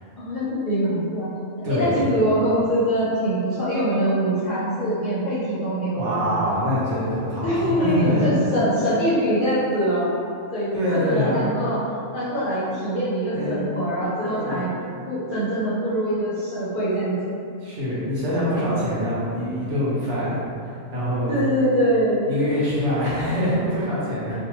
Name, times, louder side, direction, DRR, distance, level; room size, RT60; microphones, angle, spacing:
voice 1, 0.2-1.3 1.7-6.4 7.4-10.1 10.5-11.8 12.1-14.7 15.1-17.1 21.3-22.3, equal, 50° left, -11 dB, 0.7 m, -23 dB
voice 2, 1.6-2.0 5.9-8.3 10.7-11.4 13.3-13.6 14.2-14.6 17.6-20.4 20.6-21.4 22.2-24.3, equal, 65° right, -9 dB, 1.1 m, -24 dB
2.6 x 2.2 x 2.9 m, 2.5 s
omnidirectional pair, 1.4 m